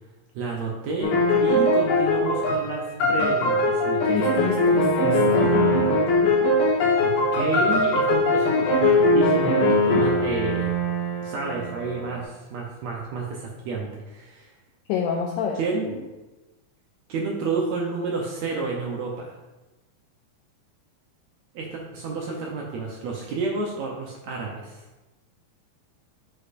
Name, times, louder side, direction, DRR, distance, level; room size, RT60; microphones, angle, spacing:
voice 1, 0.3-1.1 1.4-4.5 7.0-10.7 11.2-14.5 15.5-16.1 17.1-19.3 21.5-24.8, right 3 dB, 80° right, -1 dB, 1.6 m, -30 dB
sound 1, 1.0-12.2, left 1 dB, 65° left, 2.2 m, -21 dB
voice 2, 4.1-5.6 14.9-15.6, left 7 dB, 80° left, 0 dB, 1.8 m, -28 dB
9.7 x 4.4 x 2.5 m, 1.1 s
omnidirectional pair, 3.9 m